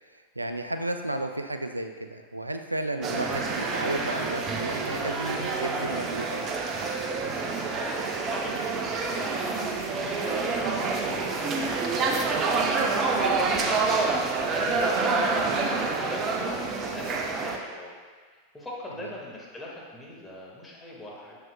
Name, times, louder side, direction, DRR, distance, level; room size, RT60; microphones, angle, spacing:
voice 1, 0.1-6.4 15.4-15.6 19.0-19.1, right 1 dB, 85° right, 7 dB, 0.4 m, -33 dB
sound 1, 3.0-17.6, right 4 dB, 30° right, 0.6 m, -27 dB
voice 2, 7.8-8.6 8.9-17.9 18.5-21.4, left 1 dB, 5° left, -5 dB, 1.6 m, -41 dB
7.7 x 6.4 x 2.2 m, 1.5 s
figure-of-eight pair, 90°, 0 cm